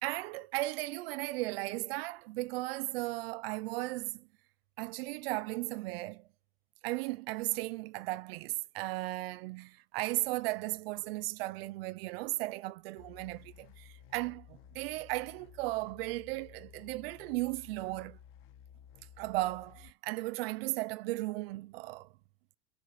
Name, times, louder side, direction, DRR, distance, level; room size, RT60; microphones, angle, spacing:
voice 1, 0.0-4.3 4.8-6.3 6.8-18.2 19.2-22.1, right 20 dB, 60° right, 0.6 m, -36 dB
sound 1, 12.9-19.9, left 9 dB, 35° left, 1.1 m, -55 dB
7.9 x 5.6 x 5.6 m
supercardioid pair, 150°, 35 cm